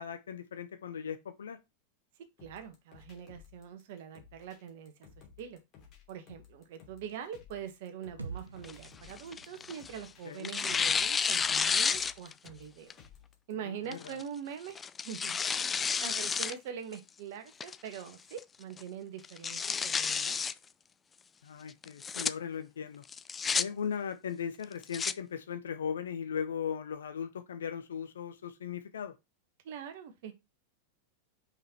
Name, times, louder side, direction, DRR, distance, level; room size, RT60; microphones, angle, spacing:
voice 1, 0.0-1.6 10.2-10.5 13.6-14.2 21.4-23.0 23.5-29.1, left 7 dB, 65° left, 1.1 m, -38 dB
sound 1, 2.4-13.5, left 7 dB, 35° left, 2.8 m, -57 dB
voice 2, 2.4-4.9 5.4-5.6 6.1-12.9 13.5-14.8 15.0-20.4 29.6-30.3, right 8 dB, 50° right, 1.5 m, -43 dB
sound 2, 8.2-12.1, right 4 dB, 80° right, 1.1 m, -48 dB
Tearing, 8.6-10.0 10.4-12.5 12.9-13.0 13.9-14.2 14.8-16.5 16.9-17.0 17.6-18.0 18.4-18.5 18.8-18.9 19.2-20.5 21.8-22.3 23.1-23.6 24.6-25.1, left 6 dB, 20° left, 0.4 m, -31 dB
5.6 x 5.5 x 4.4 m
figure-of-eight pair, 90°, 0 cm